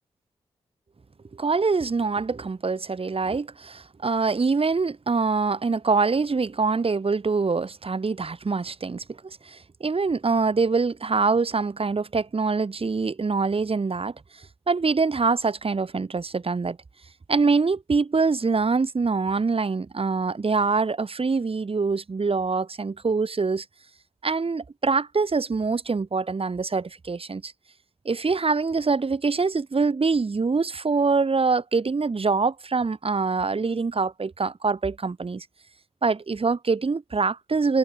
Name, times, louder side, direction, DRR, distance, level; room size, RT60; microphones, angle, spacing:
voice 1, 1.3-14.1 14.7-16.8 17.3-23.6 24.2-27.5 28.0-35.4 36.0-37.8, right 4 dB, 50° right, 3.1 m, -24 dB
supercardioid pair, 40°, 12 cm